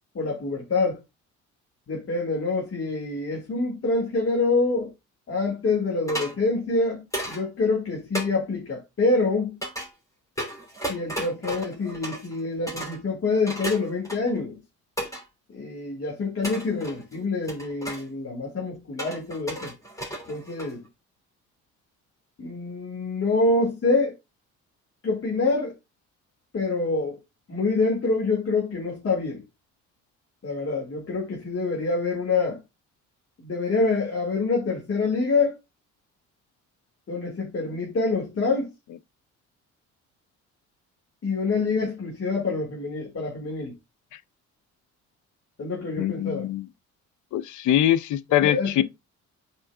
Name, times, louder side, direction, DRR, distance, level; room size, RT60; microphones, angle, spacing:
voice 1, 0.1-1.0 1.9-4.9 5.3-9.6 10.9-14.6 15.5-19.7 20.3-20.8 22.4-24.1 25.0-25.7 26.5-27.2 27.5-29.4 30.4-32.6 33.4-35.5 37.1-38.7 41.2-43.7 45.6-46.5 48.4-48.8, left 3 dB, 45° left, 2.0 m, -26 dB
sound 1, 6.1-6.3 7.1-7.4 8.1-8.3 9.6-9.9 10.4-12.4 12.7-13.0 13.5-14.4 15.0-15.2 16.4-17.2 17.5-18.0 19.0-20.9, right 1 dB, 10° left, 2.8 m, -34 dB
voice 2, 46.0-46.6 47.3-48.8, left 12 dB, 75° left, 0.6 m, -23 dB
11.5 x 4.4 x 2.3 m
cardioid pair, 90°, 30 cm